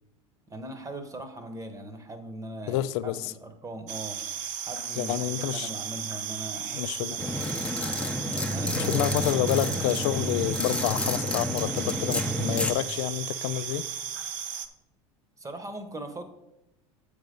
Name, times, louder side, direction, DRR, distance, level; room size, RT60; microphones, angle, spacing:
voice 1, 0.5-4.2 4.6-7.2 8.3-9.4 15.4-16.2, right 2 dB, 20° right, 1.1 m, -40 dB
voice 2, 2.7-3.2 5.0-5.7 6.7-7.2 8.7-13.8, left 13 dB, 65° left, 0.4 m, -28 dB
sound 1, 3.9-14.7, right 8 dB, 50° right, 0.7 m, -35 dB
sound 2, 7.2-12.7, left 1 dB, 5° left, 0.8 m, -30 dB
7.7 x 5.1 x 5.3 m
hypercardioid pair, 85°, 17 cm